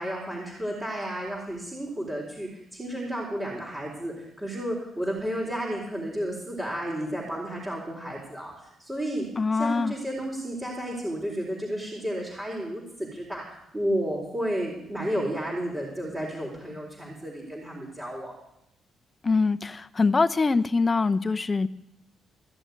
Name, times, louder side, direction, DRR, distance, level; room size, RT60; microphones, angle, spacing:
voice 1, 0.0-18.3, equal, 15° right, -4 dB, 4.3 m, -32 dB
voice 2, 9.4-9.9 19.2-21.7, left 4 dB, 30° left, 11 dB, 0.8 m, -23 dB
16.0 x 7.1 x 9.5 m, 0.83 s
cardioid pair, 90°, 0 cm